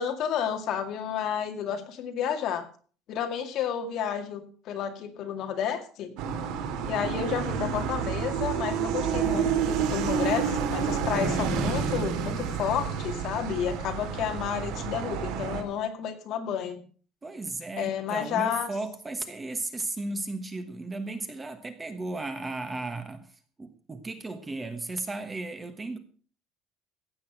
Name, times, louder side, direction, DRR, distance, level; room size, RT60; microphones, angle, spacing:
voice 1, 0.0-2.6 3.1-6.1 6.9-16.8 17.8-18.7, left 8 dB, 45° left, 2.3 m, -31 dB
sound 1, 6.2-15.6, right 6 dB, 70° right, 3.1 m, -29 dB
voice 2, 17.2-23.3 23.6-26.0, right 2 dB, 15° right, 1.2 m, -35 dB
16.0 x 8.7 x 6.0 m
cardioid pair, 170°, 0 cm